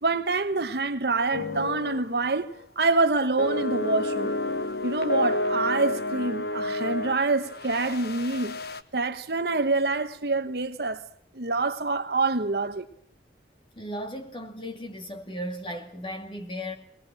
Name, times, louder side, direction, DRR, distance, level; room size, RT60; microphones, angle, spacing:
voice 1, 0.0-2.5 2.8-4.3 4.8-8.6 8.9-11.0 11.3-12.9, right 3 dB, 60° right, 1.1 m, -26 dB
sound 1, 1.3-2.1 2.4-2.6 3.4-8.8, left 2 dB, 60° left, 1.0 m, -30 dB
voice 2, 13.8-16.7, equal, 30° left, 2.3 m, -36 dB
21.0 x 19.5 x 7.7 m
head